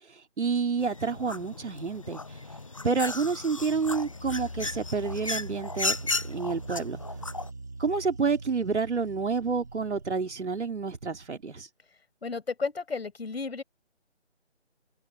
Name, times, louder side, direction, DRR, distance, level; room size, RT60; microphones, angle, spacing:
voice 1, 0.4-2.2 2.8-6.0 6.3-7.0 7.8-11.7, right 4 dB, 70° right, 3.0 m, -29 dB
sound 1, 0.8-7.5, left 3 dB, 30° left, 0.6 m, -35 dB
sound 2, 4.9-11.4, right 3 dB, 15° right, 0.8 m, -43 dB
voice 2, 12.2-13.6, left 4 dB, 60° left, 7.2 m, -33 dB
figure-of-eight pair, 165°, 35 cm